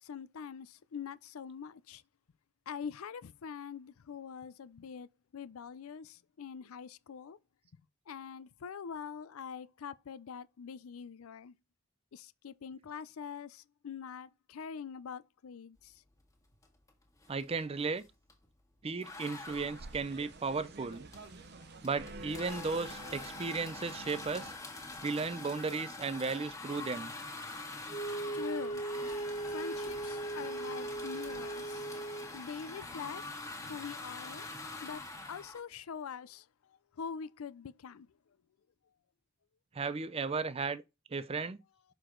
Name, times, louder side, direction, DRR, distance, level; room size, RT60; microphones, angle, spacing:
voice 1, 0.0-2.0 2.7-7.4 7.7-7.8 8.1-11.6 12.1-15.9 28.3-28.8 29.5-31.8 32.3-33.2 33.6-34.5 34.8-35.0 35.3-36.5 37.0-38.1, left 6 dB, 85° left, 0.5 m, -44 dB
sound 1, 16.6-16.9 17.2-18.4 19.0-35.6, left 2 dB, 15° left, 1.7 m, -45 dB
voice 2, 17.3-18.0 18.8-21.1 21.8-24.5 25.0-27.1 39.7-40.8 41.1-41.6, right 4 dB, 30° right, 0.4 m, -35 dB
sound 2, 19.5-24.6, right 2 dB, 50° right, 0.8 m, -49 dB
Wind instrument woodwind instrument, 27.9-32.4, right 2 dB, 35° left, 0.9 m, -38 dB
6.2 x 4.8 x 3.8 m
head